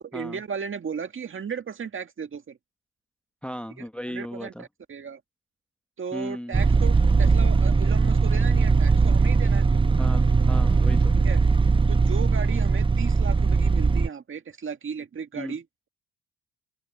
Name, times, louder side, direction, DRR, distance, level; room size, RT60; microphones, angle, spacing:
voice 1, 0.1-2.6 3.8-5.2 6.0-9.7 11.2-11.4 11.9-15.9, right 6 dB, 40° right, 1.9 m, -35 dB
voice 2, 3.4-4.6 6.1-6.6 10.0-11.2 15.3-15.5, equal, 5° left, 1.0 m, -35 dB
sound 1, 6.5-14.1, right 4 dB, 15° right, 0.6 m, -20 dB
open air
cardioid pair, 90°, 30 cm